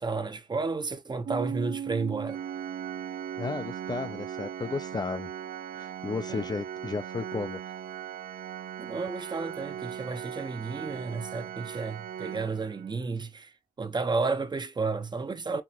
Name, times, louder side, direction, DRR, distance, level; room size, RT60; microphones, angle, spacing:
voice 1, 0.0-2.4 6.3-6.5 8.8-15.6, right 4 dB, 30° right, 0.7 m, -32 dB
Piano, 1.2-8.5, right 8 dB, 65° right, 0.9 m, -41 dB
Organ, 2.3-13.1, right 9 dB, 90° right, 0.5 m, -39 dB
voice 2, 3.4-5.3 5.7-7.6, left 4 dB, 30° left, 0.4 m, -33 dB
5.9 x 2.8 x 2.9 m
cardioid pair, 105°, 15 cm